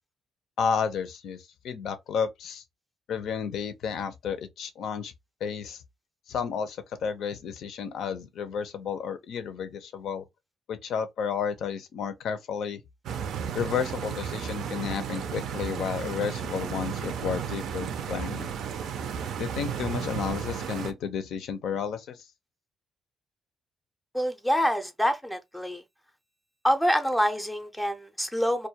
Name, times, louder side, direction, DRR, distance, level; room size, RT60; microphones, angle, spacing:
voice 1, 0.6-2.6 3.1-5.1 5.4-5.8 6.3-10.3 10.7-12.8 13.5-18.5 19.4-22.3, left 6 dB, 75° left, 0.5 m, -32 dB
Stream, 13.0-20.9, right 7 dB, 75° right, 0.4 m, -33 dB
voice 2, 24.1-25.8 26.6-28.7, equal, 5° left, 0.5 m, -26 dB
2.3 x 2.1 x 2.8 m
cardioid pair, 90°, 0 cm